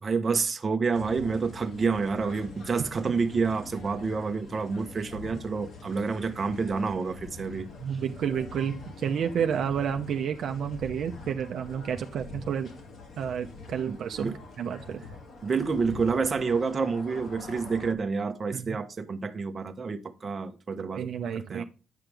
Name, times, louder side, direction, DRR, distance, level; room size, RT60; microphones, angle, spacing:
voice 1, 0.0-7.7 13.9-14.4 15.4-21.1 21.5-21.6, right 4 dB, 35° right, 1.1 m, -28 dB
sound 1, 0.9-17.9, left 3 dB, 65° left, 2.7 m, -45 dB
voice 2, 7.8-12.7 13.2-15.0 18.5-18.8 20.9-21.6, right 8 dB, 65° right, 0.8 m, -30 dB
9.5 x 5.8 x 3.4 m
cardioid pair, 90°, 0 cm